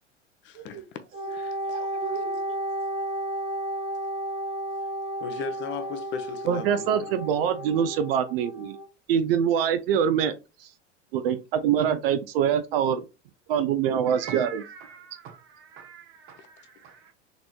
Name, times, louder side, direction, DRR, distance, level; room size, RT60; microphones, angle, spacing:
voice 1, 0.4-1.0 1.3-1.8 2.1-2.2 5.2-7.6 16.4-16.5, left 6 dB, 35° left, 0.5 m, -38 dB
Wind instrument woodwind instrument, 1.1-8.8, right 1 dB, 80° right, 1.2 m, -33 dB
voice 2, 1.7-2.6 14.1-16.5 16.8-17.1, right 8 dB, 35° right, 0.9 m, -41 dB
voice 3, 6.5-8.8 9.1-10.3 10.6-10.7 11.1-13.0 13.5-14.6, right 8 dB, 55° right, 0.5 m, -24 dB
3.9 x 2.9 x 2.2 m
figure-of-eight pair, 80°, 36 cm